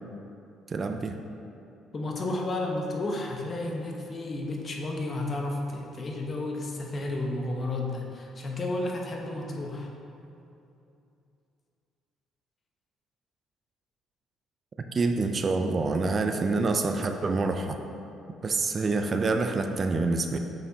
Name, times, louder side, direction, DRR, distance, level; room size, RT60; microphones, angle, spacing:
voice 1, 0.7-1.2 14.9-17.8 18.4-20.4, right 3 dB, 40° right, 6 dB, 0.4 m, -26 dB
voice 2, 1.9-9.9, left 2 dB, 40° left, 0 dB, 0.9 m, -32 dB
6.7 x 5.7 x 2.8 m, 2.7 s
supercardioid pair, 70°, 0 cm